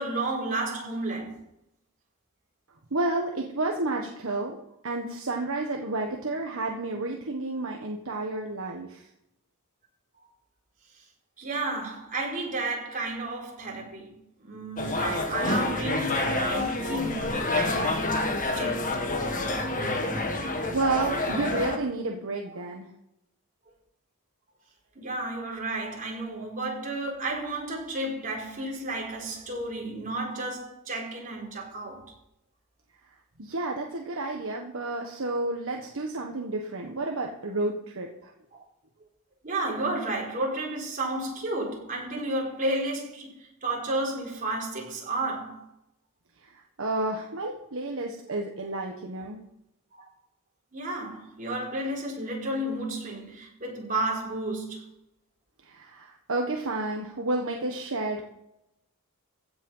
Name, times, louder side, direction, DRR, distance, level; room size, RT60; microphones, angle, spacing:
voice 1, 0.0-1.4 10.2-10.3 11.4-18.8 24.9-32.1 38.5-38.6 39.4-45.6 49.9-50.1 50.7-54.8, right 2 dB, 40° right, 4.5 m, -32 dB
voice 2, 2.9-4.5 4.8-9.0 20.7-22.9 33.4-38.3 46.8-49.4 55.6-58.3, right 2 dB, 65° right, 1.4 m, -31 dB
sound 1, 14.8-21.8, left 2 dB, 35° left, 1.7 m, -28 dB
16.0 x 7.5 x 5.6 m
head